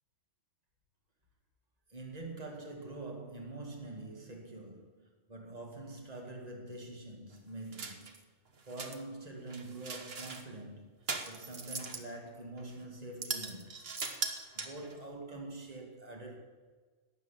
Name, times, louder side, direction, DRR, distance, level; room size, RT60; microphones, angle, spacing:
voice 1, 1.9-8.3 8.7-11.0 11.2-13.9 14.5-16.4, right 2 dB, 35° right, 2.2 m, -45 dB
sound 1, 7.7-8.2 8.6-9.0 9.5-10.4 11.1-12.1 12.6-12.7 13.2-15.0, right 4 dB, 55° right, 1.4 m, -39 dB
13.0 x 8.1 x 9.9 m
omnidirectional pair, 1.2 m